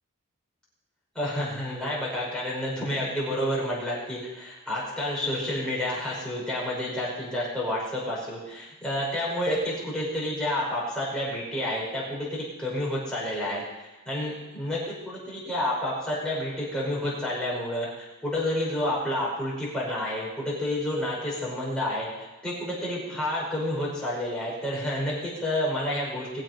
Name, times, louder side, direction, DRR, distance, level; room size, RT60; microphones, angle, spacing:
voice 1, 1.2-13.6 14.1-26.4, left 1 dB, 5° left, -7 dB, 5.4 m, -29 dB
21.5 x 8.0 x 5.4 m, 1.1 s
head